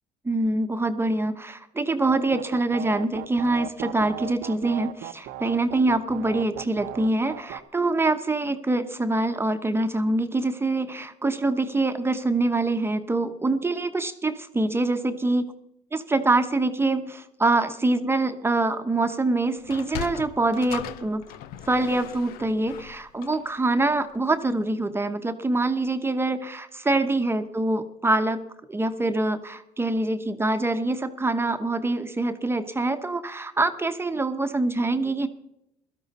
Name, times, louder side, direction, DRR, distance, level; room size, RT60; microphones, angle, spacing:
voice 1, 0.2-15.5 15.9-21.2 21.7-28.4 28.7-35.3, right 2 dB, 15° right, 8 dB, 1.0 m, -25 dB
sound 1, 2.0-7.6, right 13 dB, 85° right, 0.9 m, -37 dB
Sliding door, 19.6-24.2, left 10 dB, 85° left, 0.8 m, -39 dB
17.0 x 13.0 x 4.2 m, 0.80 s
cardioid pair, 100°, 15 cm